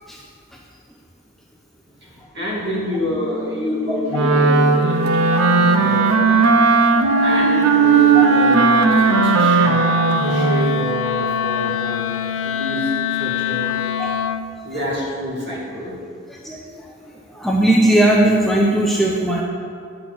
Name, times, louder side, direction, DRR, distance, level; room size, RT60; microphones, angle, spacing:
voice 1, 2.0-5.0 5.3-6.9 7.2-12.0 12.4-13.7 14.6-16.0, equal, 50° right, -5 dB, 2.4 m, -27 dB
Wind instrument woodwind instrument, 3.0-14.5, left 7 dB, 60° left, 0.4 m, -27 dB
Wind instrument woodwind instrument 2, 4.1-10.8, right 4 dB, 75° right, 0.7 m, -16 dB
voice 2, 6.9-7.2 8.1-8.2 14.0-14.2 16.3-16.6 17.3-19.4, right 1 dB, ahead, -2 dB, 0.6 m, -18 dB
9.9 x 6.1 x 6.1 m, 2.3 s
head